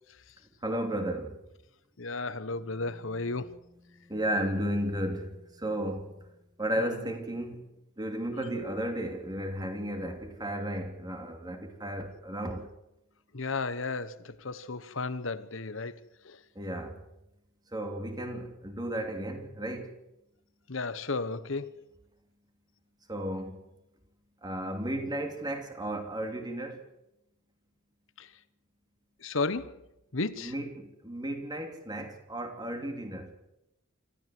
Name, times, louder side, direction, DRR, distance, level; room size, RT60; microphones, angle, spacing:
voice 1, 0.6-1.4 3.9-6.3 6.6-7.6 8.0-12.7 16.5-17.0 17.7-19.9 23.1-23.7 24.4-26.8 30.4-33.4, right 1 dB, 20° right, 2.9 m, -34 dB
voice 2, 2.0-3.5 6.8-7.1 8.3-8.6 13.3-16.4 20.7-21.8 28.2-28.3 29.2-29.8 30.1-30.5, left 3 dB, 65° left, 1.1 m, -34 dB
26.0 x 14.5 x 7.8 m
head